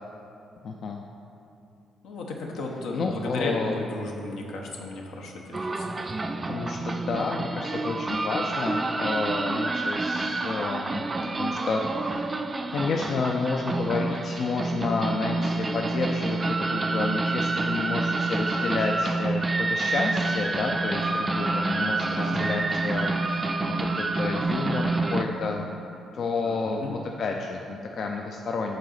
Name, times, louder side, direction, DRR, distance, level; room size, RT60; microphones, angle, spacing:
voice 1, 0.6-1.0 2.9-3.8 6.5-11.0 11.4-12.3 12.7-25.7 26.1-28.8, left 4 dB, 55° left, 1 dB, 0.4 m, -30 dB
voice 2, 2.0-5.9 22.0-22.4 26.4-26.9, left 2 dB, 85° left, 0 dB, 1.0 m, -34 dB
sound 1, 5.5-25.2, right 3 dB, 25° right, 0.4 m, -28 dB
6.5 x 3.9 x 6.4 m, 2.8 s
cardioid pair, 90°, 0 cm